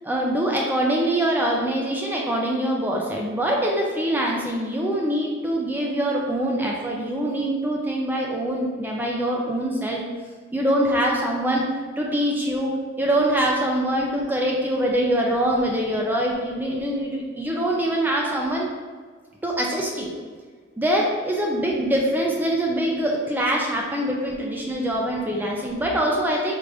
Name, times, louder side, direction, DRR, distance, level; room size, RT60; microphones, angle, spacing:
voice 1, 0.0-10.0 10.5-11.6 12.0-12.7 13.0-18.7 19.4-20.1 20.8-26.5, right 1 dB, 10° right, -2 dB, 0.4 m, -24 dB
4.8 x 2.5 x 3.4 m, 1.5 s
head